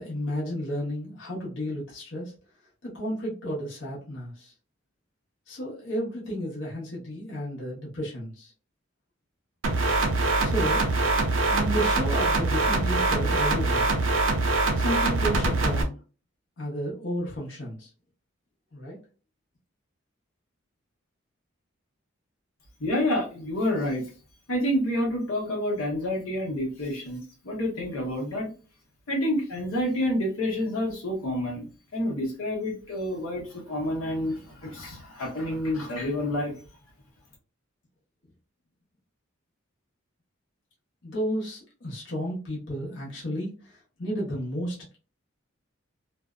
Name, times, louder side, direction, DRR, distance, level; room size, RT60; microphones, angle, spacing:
voice 1, 0.0-2.3 2.8-4.5 5.5-8.5 10.4-10.8 11.5-13.9 14.7-16.0 16.6-17.9 18.7-19.0 41.0-45.0, equal, 60° left, -4 dB, 0.9 m, -32 dB
sound 1, 9.6-15.8, right 2 dB, 65° right, 0.5 m, -24 dB
voice 2, 22.8-24.0 24.5-28.5 29.1-36.5, left 1 dB, 85° left, -2 dB, 0.9 m, -28 dB
2.6 x 2.1 x 2.3 m, 0.35 s
head